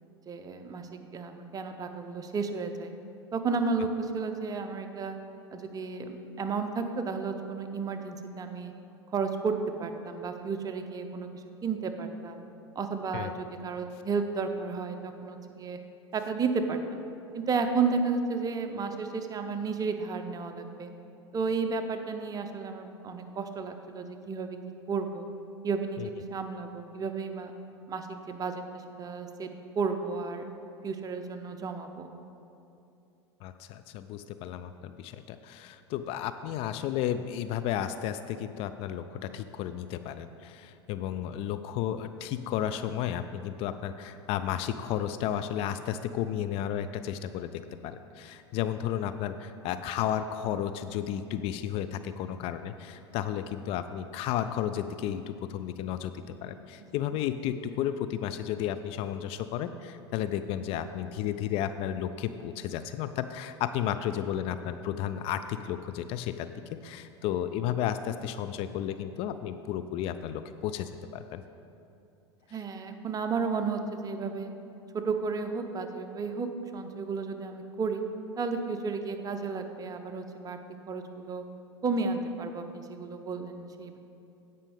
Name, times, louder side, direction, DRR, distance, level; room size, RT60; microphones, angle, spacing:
voice 1, 0.3-2.9 3.3-5.2 5.5-8.7 9.1-9.5 9.8-12.4 12.7-15.8 16.1-17.0 17.3-20.9 21.3-24.6 24.9-25.2 25.6-26.0 26.3-27.5 27.9-29.5 29.8-30.5 30.8-32.1 72.5-74.5 74.9-78.0 78.4-80.6 80.9-81.4 81.8-84.0, right 4 dB, 25° right, 6 dB, 0.7 m, -32 dB
voice 2, 33.4-66.5 66.8-71.4, left 10 dB, 45° left, 10 dB, 0.4 m, -33 dB
16.0 x 5.4 x 3.5 m, 2.7 s
figure-of-eight pair, 80°, 14 cm